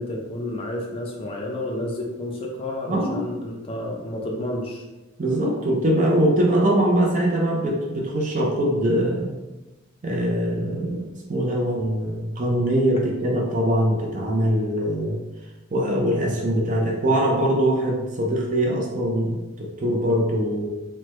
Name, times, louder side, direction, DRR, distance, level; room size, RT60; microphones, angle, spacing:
voice 1, 0.0-4.9, left 1 dB, 25° left, -1 dB, 0.4 m, -30 dB
voice 2, 2.9-3.2 5.2-9.3 10.0-15.2 15.7-20.7, right 1 dB, 35° right, -1 dB, 0.5 m, -22 dB
3.2 x 2.1 x 3.0 m, 1.1 s
head